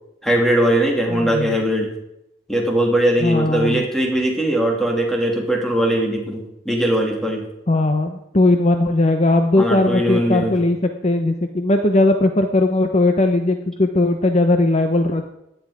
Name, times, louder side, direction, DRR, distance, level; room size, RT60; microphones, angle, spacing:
voice 1, 0.2-1.9 2.5-7.4 9.6-10.6, right 1 dB, ahead, 0 dB, 2.7 m, -20 dB
voice 2, 1.1-1.6 3.2-3.8 7.7-15.3, left 2 dB, 35° left, 6 dB, 0.8 m, -18 dB
17.0 x 10.5 x 4.9 m, 0.85 s
head